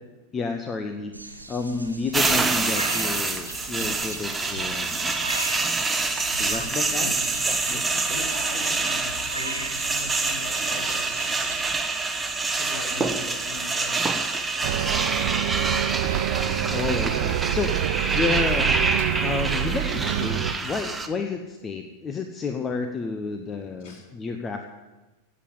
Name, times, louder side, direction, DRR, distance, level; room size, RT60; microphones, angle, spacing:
voice 1, 0.3-5.2 6.4-7.1 7.5-7.8 8.1-8.2 16.7-17.7 18.1-18.7 19.2-24.7, left 4 dB, 20° left, 6 dB, 1.0 m, -30 dB
sound 1, 1.1-11.7, right 2 dB, 85° right, 1.6 m, -39 dB
sound 2, 2.1-21.1, right 3 dB, 10° right, 1.3 m, -26 dB
voice 2, 6.9-7.3 7.7-11.3 11.6-11.9 12.6-14.0 14.5-15.0 23.8-24.0, left 2 dB, 50° left, -1 dB, 4.6 m, -40 dB
Bus, 14.6-20.5, right 12 dB, 50° right, 0.6 m, -26 dB
17.0 x 7.6 x 8.8 m, 1.1 s
figure-of-eight pair, 90°, 0 cm